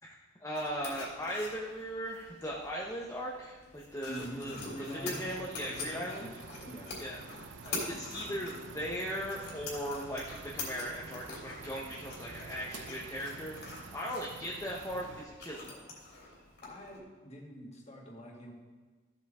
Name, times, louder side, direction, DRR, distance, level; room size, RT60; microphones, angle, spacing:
voice 1, 0.0-6.3 7.0-7.2 7.6-15.8, equal, 15° left, -4 dB, 0.9 m, -38 dB
sound 1, 0.5-17.0, left 3 dB, 55° left, 3.0 m, -46 dB
sound 2, 3.8-15.2, right 4 dB, 70° right, 0.7 m, -49 dB
voice 2, 4.1-5.3 5.7-6.3 6.7-6.9 16.6-18.5, equal, 35° left, -1 dB, 2.1 m, -45 dB
14.0 x 7.8 x 3.7 m, 1.4 s
head